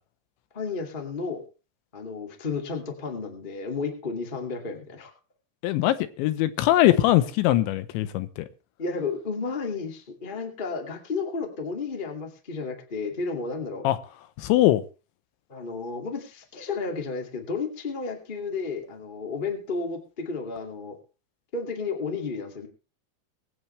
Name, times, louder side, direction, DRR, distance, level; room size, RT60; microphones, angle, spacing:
voice 1, 0.5-1.4 1.9-5.1 8.8-13.9 15.5-21.0 21.5-22.7, left 4 dB, 25° left, 1.0 m, -32 dB
voice 2, 5.6-8.5 13.8-14.0 14.4-14.8, left 15 dB, 90° left, 3.3 m, -21 dB
23.0 x 8.8 x 3.3 m
omnidirectional pair, 5.2 m